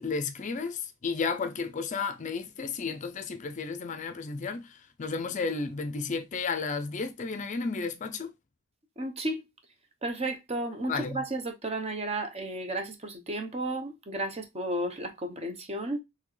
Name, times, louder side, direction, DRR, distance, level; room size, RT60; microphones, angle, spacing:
voice 1, 0.0-8.3 10.9-11.2, left 4 dB, 35° left, 0.5 m, -33 dB
voice 2, 9.0-9.5 10.0-16.0, right 1 dB, 30° right, 0.8 m, -33 dB
4.3 x 3.3 x 3.1 m
head